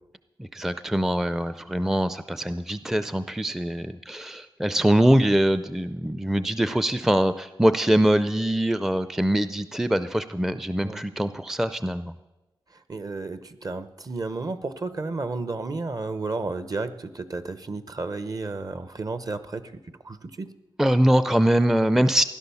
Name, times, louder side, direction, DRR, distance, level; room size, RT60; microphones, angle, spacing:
voice 1, 0.4-12.2 20.8-22.2, right 1 dB, 5° right, 12 dB, 0.4 m, -23 dB
voice 2, 12.9-19.7 20.0-20.5, right 3 dB, 45° right, 13 dB, 0.9 m, -32 dB
16.0 x 11.5 x 7.0 m, 1.1 s
wide cardioid pair, 115°, 9 cm